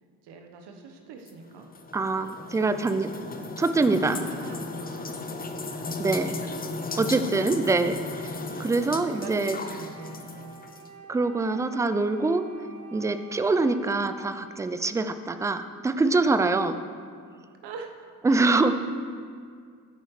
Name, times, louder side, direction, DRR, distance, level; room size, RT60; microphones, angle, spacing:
voice 1, 0.2-1.7 3.1-3.5 4.1-5.9 6.9-7.2 8.3-8.6 8.9-10.5 16.4-16.5 17.6-18.5, right 5 dB, 55° right, 4 dB, 1.3 m, -44 dB
sound 1, 1.3-10.9, left 3 dB, 20° left, 0.8 m, -36 dB
voice 2, 1.9-3.1 3.6-4.2 6.0-6.3 7.0-8.0 8.6-9.6 11.1-12.4 12.9-16.8 18.2-18.9, right 3 dB, 5° right, 10 dB, 0.4 m, -24 dB
Wind instrument woodwind instrument, 8.0-15.7, right 5 dB, 30° right, 1.7 m, -50 dB
14.5 x 8.9 x 3.3 m, 2.1 s
figure-of-eight pair, 50°, 49 cm